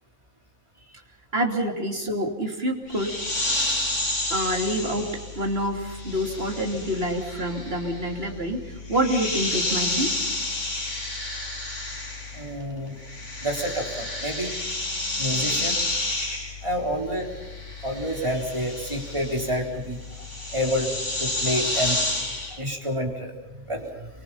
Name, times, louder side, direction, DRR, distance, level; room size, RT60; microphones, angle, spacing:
voice 1, 1.3-3.2 4.3-10.2, equal, 55° right, 3 dB, 3.3 m, -27 dB
sound 1, 2.9-12.6 12.9-22.6, left 2 dB, 90° left, 4.6 m, -30 dB
voice 2, 12.3-13.0 13.4-14.5 15.2-15.8 16.6-17.3 17.8-20.0 20.5-20.9 21.2-22.0 22.6-23.3 23.7-24.1, equal, 25° right, 1 dB, 3.8 m, -28 dB
28.0 x 23.5 x 5.7 m, 1.1 s
omnidirectional pair, 1.2 m